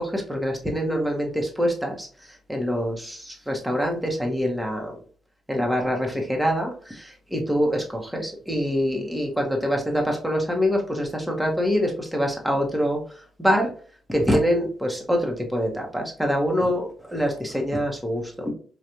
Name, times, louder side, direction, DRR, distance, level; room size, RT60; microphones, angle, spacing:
voice 1, 0.0-2.1 2.5-4.9 5.5-13.0 13.4-13.7 14.1-18.5, equal, 5° right, 1 dB, 1.0 m, -25 dB
4.9 x 2.4 x 2.8 m, 0.41 s
cardioid pair, 110°, 0 cm